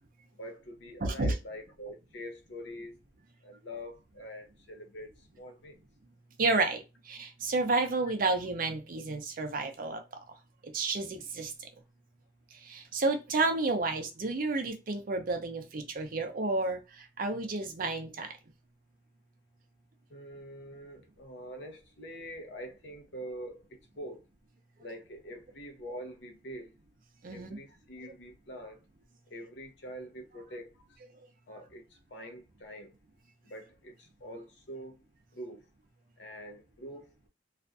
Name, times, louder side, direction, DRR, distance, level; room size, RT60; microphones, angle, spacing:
voice 1, 0.4-2.9 3.4-5.8 20.1-24.2 24.8-26.7 27.3-28.8 29.3-31.0 31.5-33.0 33.4-35.0 35.3-35.7 36.2-37.3, equal, 65° left, 0.7 m, -45 dB
voice 2, 1.0-1.3 6.4-10.0 10.6-11.7 12.5-18.3 27.2-27.6 28.0-28.1, right 3 dB, 50° right, 0.5 m, -31 dB
2.4 x 2.2 x 2.5 m
head